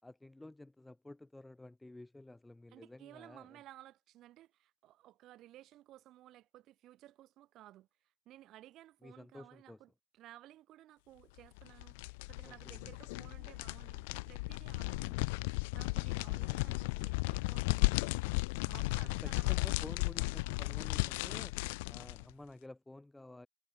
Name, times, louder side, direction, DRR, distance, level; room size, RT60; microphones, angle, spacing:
voice 1, 0.0-3.6 9.0-9.8 12.4-12.9 18.9-21.5 21.8-23.5, left 2 dB, 5° left, 3.1 m, -52 dB
voice 2, 2.7-7.9 8.2-19.9, right 14 dB, 40° right, 4.9 m, -57 dB
sound 1, 11.6-22.2, left 26 dB, 65° left, 1.8 m, -35 dB
supercardioid pair, 140°, 0 cm